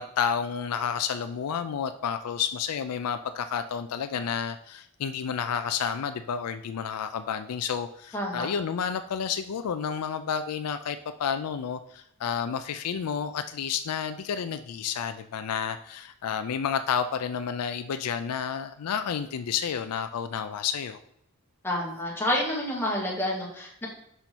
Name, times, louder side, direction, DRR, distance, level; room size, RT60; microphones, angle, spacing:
voice 1, 0.0-21.0, left 7 dB, 85° left, 10 dB, 0.4 m, -30 dB
voice 2, 8.1-8.5 21.6-23.9, left 1 dB, 10° left, -3 dB, 1.7 m, -29 dB
5.6 x 5.1 x 4.5 m, 0.71 s
head